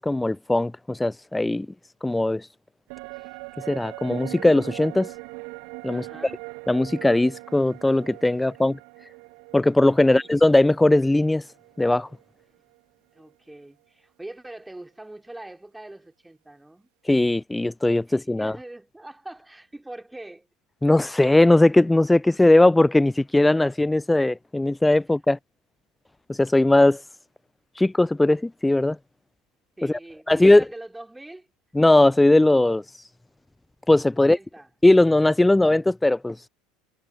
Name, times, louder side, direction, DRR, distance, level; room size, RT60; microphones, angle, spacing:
voice 1, 0.0-1.7 2.0-2.5 3.7-5.1 5.8-6.3 6.7-8.8 9.5-11.4 11.8-12.1 17.1-18.6 20.8-25.4 26.3-27.0 27.8-29.0 29.8-30.0 30.3-30.6 31.7-32.8 33.9-34.4 34.8-36.4, left 2 dB, 10° left, 0.3 m, -19 dB
sound 1, 2.9-12.4 12.7-12.8, right 30 dB, 60° right, 1.1 m, -41 dB
voice 2, 5.9-6.4 8.3-8.5 10.0-10.3 13.1-16.9 18.1-20.5 29.8-31.5 34.1-34.7, right 1 dB, 10° right, 3.2 m, -42 dB
figure-of-eight pair, 75°, 0 cm